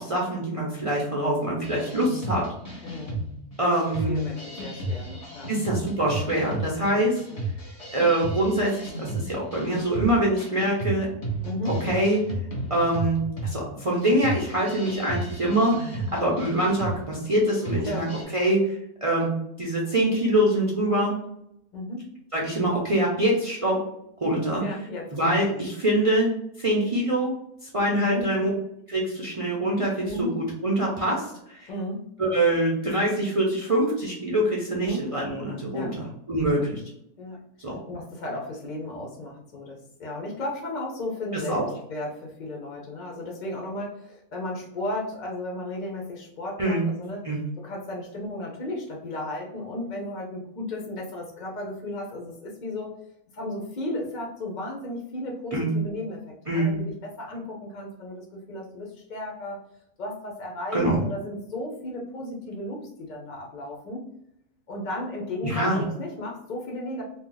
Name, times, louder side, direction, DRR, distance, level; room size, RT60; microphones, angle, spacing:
voice 1, 0.0-2.4 3.6-4.2 5.5-7.2 7.9-11.1 11.8-12.2 12.7-18.1 18.3-18.8 19.0-19.3 19.6-21.2 22.3-23.8 24.2-24.6 25.1-27.3 27.7-28.5 28.9-31.7 32.2-36.8 37.6-37.8 41.3-41.6 46.6-46.8 47.2-47.4 55.5-55.7 56.5-56.7 60.7-61.0 65.4-65.8, right 1 dB, 60° right, -4 dB, 0.3 m, -24 dB
sound 1, 1.6-18.2, right 2 dB, 30° left, 0.9 m, -34 dB
voice 2, 2.8-3.2 4.1-5.5 6.7-7.5 11.4-11.8 17.8-18.2 21.7-22.0 24.6-25.5 28.0-28.3 30.0-30.3 31.7-32.0 34.8-35.0 35.7-36.0 36.5-36.6 37.2-37.4 37.9-41.6 41.9-47.2 47.6-52.9 53.3-59.6 60.0-64.0 64.7-67.0, left 1 dB, 55° left, -1 dB, 0.5 m, -34 dB
2.7 x 2.2 x 3.8 m, 0.76 s
omnidirectional pair, 1.5 m